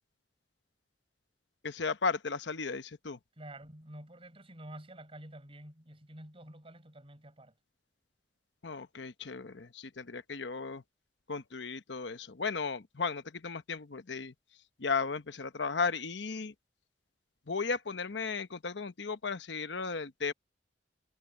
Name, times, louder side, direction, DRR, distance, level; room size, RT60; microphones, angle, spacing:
voice 1, 1.6-3.2 8.6-10.8 11.3-14.3 14.8-16.5 17.5-20.3, left 4 dB, 80° left, 1.0 m, -35 dB
voice 2, 3.4-7.5, right 1 dB, 30° right, 7.1 m, -49 dB
head